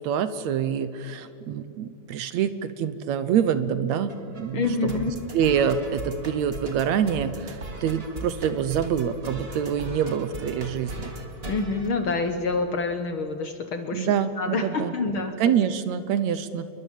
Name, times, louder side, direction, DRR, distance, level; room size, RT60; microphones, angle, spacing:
voice 1, 0.0-5.0 5.3-11.1 13.9-14.9 15.4-16.7, right 8 dB, 70° right, 13 dB, 2.0 m, -26 dB
sound 1, 4.1-12.7, right 2 dB, 25° right, 1.6 m, -39 dB
voice 2, 4.5-5.2 11.5-14.1 14.4-15.5, left 3 dB, 60° left, 7 dB, 1.4 m, -27 dB
28.5 x 22.0 x 7.5 m, 2.6 s
omnidirectional pair, 3.6 m